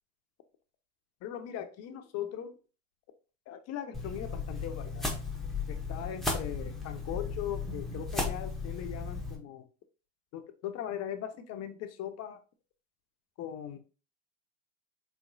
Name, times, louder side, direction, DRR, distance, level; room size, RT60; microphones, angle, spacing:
voice 1, 1.2-2.6 3.5-5.2 5.7-9.6 10.3-12.4 13.4-13.8, left 10 dB, 40° left, 8 dB, 0.7 m, -39 dB
sound 1, 3.9-9.4, left 3 dB, ahead, 0.9 m, -35 dB
3.5 x 3.0 x 2.6 m, 0.35 s
hypercardioid pair, 90°, 40 cm